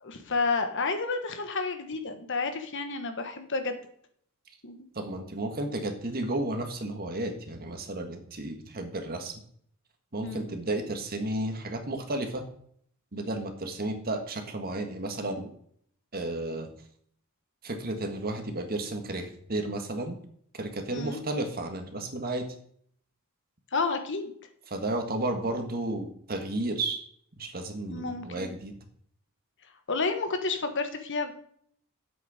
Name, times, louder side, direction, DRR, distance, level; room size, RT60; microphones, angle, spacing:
voice 1, 0.0-3.8 4.6-4.7 10.2-10.5 20.9-21.2 23.7-24.3 27.9-28.5 29.9-31.4, left 4 dB, 60° left, 7 dB, 1.3 m, -30 dB
voice 2, 4.9-9.3 10.1-12.4 13.1-15.5 16.1-16.7 17.6-20.2 20.5-22.5 24.7-27.0 27.4-28.7, right 2 dB, 45° right, 5 dB, 1.6 m, -32 dB
9.3 x 8.0 x 4.9 m, 0.62 s
head